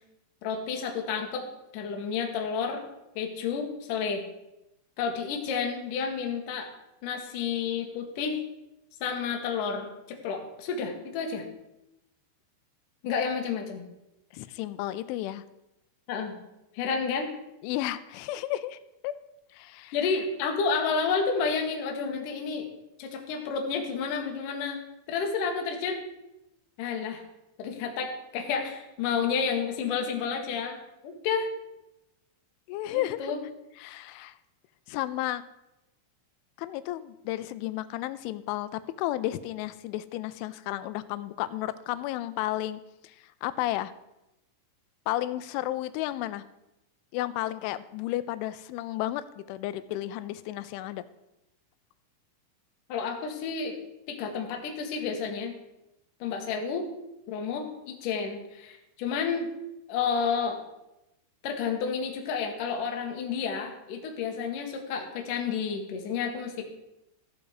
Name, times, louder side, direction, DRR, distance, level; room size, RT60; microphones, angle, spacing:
voice 1, 0.4-1.5 1.7-2.8 3.2-4.2 5.0-6.7 7.0-8.4 9.0-11.4 13.0-13.8 16.1-16.4 16.7-17.3 19.9-22.7 23.0-26.0 26.8-27.2 27.6-30.8 31.0-31.5 32.9-33.4 52.9-53.8 54.1-55.5 56.2-56.9 57.3-59.5 59.9-60.6 61.4-66.6, left 5 dB, 60° left, 3 dB, 2.4 m, -30 dB
voice 2, 14.3-15.4 17.6-18.8 19.0-19.2 19.5-20.0 32.7-33.3 33.8-34.4 34.9-35.4 36.6-43.9 45.1-46.4 47.1-51.0, left 15 dB, 90° left, 14 dB, 3.0 m, -33 dB
15.0 x 7.2 x 4.9 m, 0.90 s
omnidirectional pair, 5.4 m